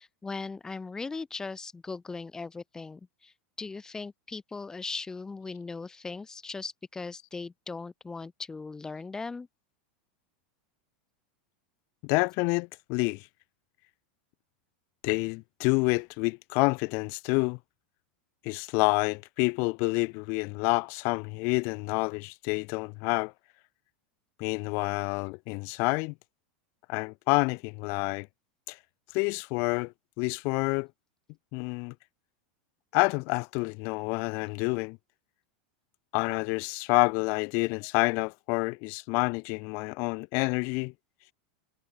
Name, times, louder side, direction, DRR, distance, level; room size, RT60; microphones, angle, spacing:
voice 1, 0.0-3.3 3.6-9.5, left 4 dB, 10° left, 6.2 m, -39 dB
voice 2, 12.0-13.3 15.0-17.6 18.4-23.3 24.4-26.1 26.9-28.3 28.7-28.8 29.1-30.9 31.5-31.9 32.9-35.0 36.1-40.9, left 31 dB, 50° left, 1.2 m, -28 dB
supercardioid pair, 140°, 5 cm